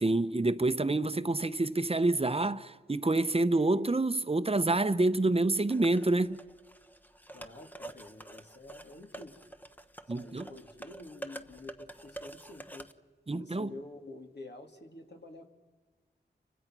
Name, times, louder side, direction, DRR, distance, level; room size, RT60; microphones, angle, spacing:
voice 1, 0.0-6.4 10.1-10.5 13.3-13.7, right 2 dB, 30° right, 1.0 m, -27 dB
sound 1, 5.7-12.9, right 1 dB, 10° left, 1.1 m, -48 dB
voice 2, 7.3-9.4 10.2-12.9 13.3-15.5, left 2 dB, 60° left, 3.1 m, -48 dB
29.5 x 25.0 x 6.1 m
cardioid pair, 45°, 19 cm